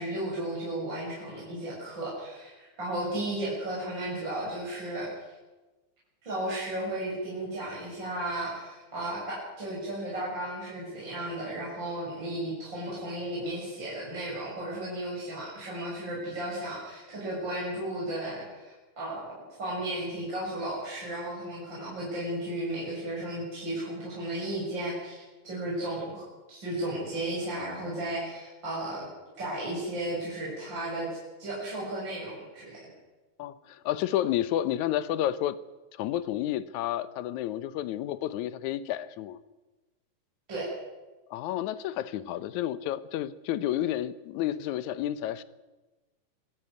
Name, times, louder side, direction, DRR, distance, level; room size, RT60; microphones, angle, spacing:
voice 1, 0.0-5.3 6.2-29.1 29.4-32.8 40.5-40.7, right 1 dB, 30° right, -6 dB, 7.6 m, -34 dB
voice 2, 33.4-35.6 35.9-39.4 41.3-45.4, left 12 dB, 70° left, 14 dB, 2.1 m, -30 dB
25.5 x 13.5 x 9.5 m, 1.2 s
omnidirectional pair, 3.9 m